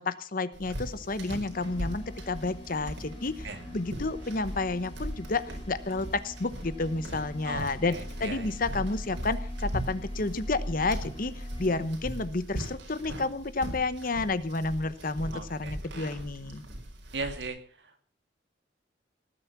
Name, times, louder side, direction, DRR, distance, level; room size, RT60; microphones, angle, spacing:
voice 1, 0.0-3.5 3.7-16.6, left 3 dB, 50° left, 14 dB, 1.0 m, -31 dB
sound 1, 0.5-17.5, equal, 80° right, 4.7 m, -39 dB
sound 2, 1.5-11.9, left 1 dB, 30° left, 4.1 m, -46 dB
voice 2, 7.4-8.6 15.3-15.8 17.1-18.0, right 3 dB, 65° right, 7 dB, 2.3 m, -38 dB
19.0 x 9.7 x 6.0 m, 0.42 s
head